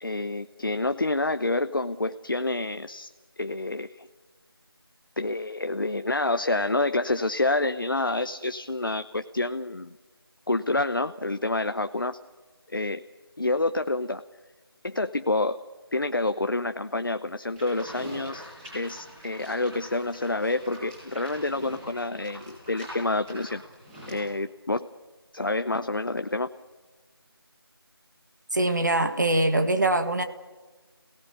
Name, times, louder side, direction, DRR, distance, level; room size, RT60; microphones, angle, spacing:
voice 1, 0.0-3.1 3.4-4.1 5.2-10.0 10.5-12.2 12.7-13.0 13.4-14.2 14.8-15.6 15.9-18.5 18.7-23.6 24.1-24.9 25.3-26.5, left 2 dB, 55° left, 9 dB, 0.9 m, -28 dB
Livestock farm animals working animals, 17.6-24.3, equal, 10° right, 6.9 m, -44 dB
voice 2, 28.5-30.2, right 2 dB, 45° right, 8 dB, 2.0 m, -23 dB
27.0 x 18.5 x 8.3 m, 1.3 s
figure-of-eight pair, 170°, 13 cm